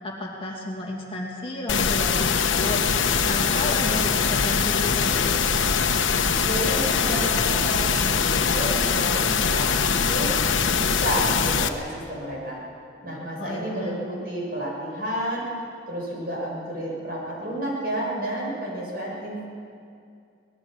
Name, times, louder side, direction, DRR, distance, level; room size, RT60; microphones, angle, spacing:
voice 1, 0.0-2.3 2.6-5.4 13.4-14.0, left 1 dB, 30° left, -2 dB, 2.5 m, -32 dB
sound 1, 1.7-11.7, left 6 dB, 90° left, 1.2 m, -22 dB
voice 2, 6.4-10.3 10.7-12.6 13.0-15.5 15.9-19.5, right 1 dB, 50° right, -3 dB, 6.8 m, -31 dB
24.5 x 19.5 x 6.6 m, 2.4 s
head